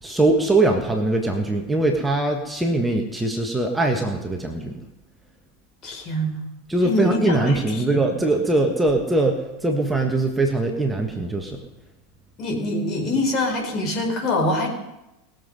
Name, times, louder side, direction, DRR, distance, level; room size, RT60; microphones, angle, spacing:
voice 1, 0.0-4.8 6.7-11.6, right 2 dB, 10° right, 2 dB, 1.7 m, -22 dB
voice 2, 5.8-6.4 6.8-8.0 12.4-14.7, left 1 dB, 40° left, 2 dB, 4.6 m, -25 dB
20.5 x 7.6 x 5.5 m, 0.93 s
figure-of-eight pair, 85°, 0 cm